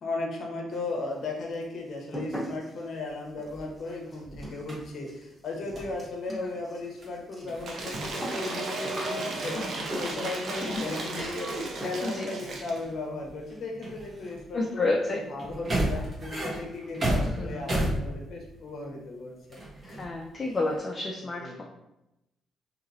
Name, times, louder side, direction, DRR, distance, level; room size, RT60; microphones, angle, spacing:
voice 1, 0.0-19.6 21.4-21.6, left 2 dB, 60° left, 0 dB, 0.7 m, -36 dB
sound 1, 0.7-1.2 1.5-10.4 11.4-11.5 11.8-12.3 12.6-12.7 13.0-13.1 13.4-13.6 13.9-14.4, equal, ahead, 1.0 m, -42 dB
sound 2, 3.1-4.9 5.7-6.0 7.0-7.1 7.4-8.2 8.4-19.0 19.5-20.8, right 1 dB, 40° right, 1.0 m, -35 dB
Cheering / Applause / Crowd, 7.6-12.8, right 2 dB, 60° right, 0.5 m, -35 dB
voice 2, 10.5-10.8 11.1-11.3 12.0-12.3 14.5-15.2 17.2-17.6 19.8-21.6, left 2 dB, 30° left, -1 dB, 0.4 m, -31 dB
2.9 x 2.8 x 2.6 m, 0.91 s
cardioid pair, 90°, 0 cm